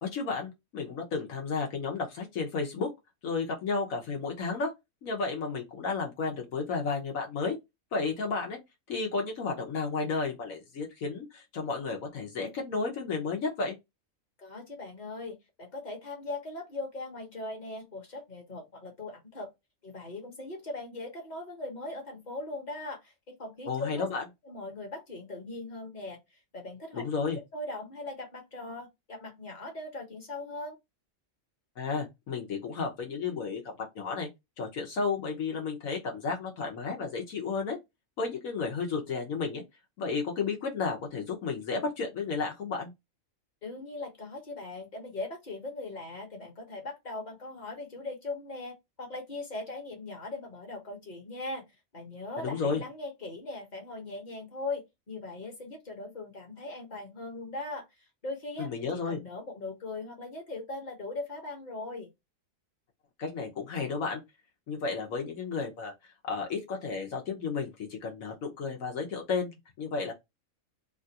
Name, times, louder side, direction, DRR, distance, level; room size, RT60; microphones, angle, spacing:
voice 1, 0.0-2.9 3.2-4.7 5.0-7.6 7.9-8.6 8.9-13.8 23.7-24.2 26.9-27.4 31.8-34.3 34.6-37.8 38.2-39.6 40.0-42.9 52.4-52.8 58.6-59.2 63.2-64.2 64.7-65.9 66.3-70.1, left 4 dB, 80° left, 1.3 m, -32 dB
voice 2, 14.4-19.5 19.8-24.1 24.4-27.0 27.5-30.8 43.6-48.7 49.0-51.6 51.9-57.8 58.2-62.1, left 2 dB, 35° left, 1.0 m, -40 dB
3.0 x 2.4 x 2.7 m
omnidirectional pair, 1.4 m